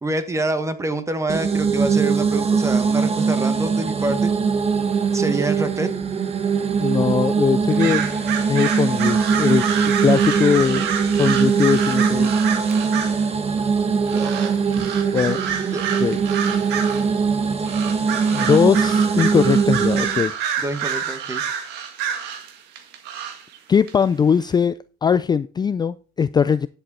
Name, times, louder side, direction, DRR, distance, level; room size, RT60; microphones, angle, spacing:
voice 1, 0.0-4.3 5.1-5.9 14.1-14.5 15.7-15.8 20.6-21.4, right 2 dB, 15° right, 1.6 m, -26 dB
sound 1, 1.3-20.2, right 5 dB, 35° right, 1.6 m, -21 dB
voice 2, 6.8-8.0 8.5-9.7 10.0-10.8 11.1-12.4 14.8-15.4 16.0-16.2 18.3-20.3 23.7-26.7, left 6 dB, 25° left, 0.4 m, -20 dB
sound 2, 7.7-13.3 14.1-17.1 17.6-23.6 23.9-24.0, right 8 dB, 90° right, 1.7 m, -28 dB
10.5 x 7.8 x 4.2 m
cardioid pair, 110°, 17 cm